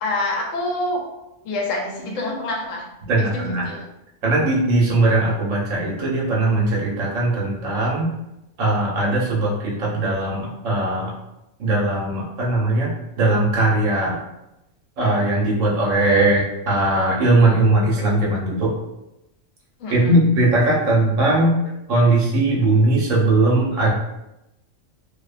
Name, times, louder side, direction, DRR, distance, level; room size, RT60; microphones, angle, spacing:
voice 1, 0.0-1.0 1.4-2.8 3.2-3.8 19.8-20.2, left 2 dB, 80° left, 0 dB, 1.0 m, -26 dB
voice 2, 3.1-3.7 4.2-8.1 8.6-11.1 11.6-12.9 13.2-14.2 15.0-18.7 19.9-21.6 21.9-23.9, right 2 dB, 80° right, -4 dB, 1.1 m, -19 dB
2.6 x 2.1 x 2.4 m, 0.90 s
omnidirectional pair, 1.3 m